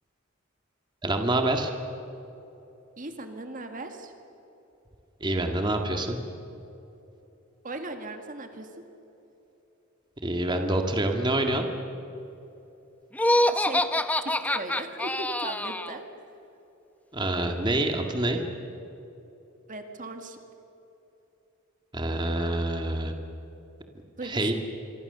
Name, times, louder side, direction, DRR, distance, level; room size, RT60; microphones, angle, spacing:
voice 1, 1.0-1.7 5.2-6.2 10.2-11.7 17.1-18.4 21.9-23.1 24.2-24.5, right 1 dB, 20° right, 4 dB, 1.8 m, -26 dB
voice 2, 3.0-4.1 7.6-8.9 13.5-13.8 14.2-16.1 19.7-20.4 24.2-24.5, right 2 dB, 40° right, 6 dB, 1.9 m, -38 dB
Laughter, 13.1-16.0, left 1 dB, 5° left, 0.8 m, -25 dB
27.0 x 23.5 x 6.8 m, 3.0 s
head